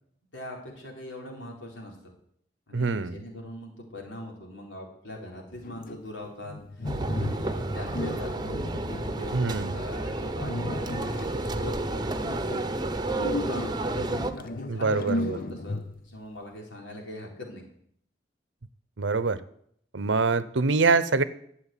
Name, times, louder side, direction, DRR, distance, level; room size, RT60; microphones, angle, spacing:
voice 1, 0.3-2.0 2.7-9.3 9.7-12.7 13.4-13.8 14.3-17.6, left 1 dB, 90° left, 0 dB, 4.1 m, -41 dB
voice 2, 2.7-3.2 9.3-9.8 14.7-15.4 19.0-19.4 19.9-21.2, right 4 dB, 80° right, 16 dB, 0.8 m, -25 dB
sound 1, 5.5-7.5 7.9-9.8 10.4-11.5 13.2-16.2, left 2 dB, 50° left, 0.6 m, -35 dB
sound 2, 6.8-14.3, right 2 dB, 20° right, 0.9 m, -31 dB
12.5 x 7.7 x 9.0 m, 0.68 s
head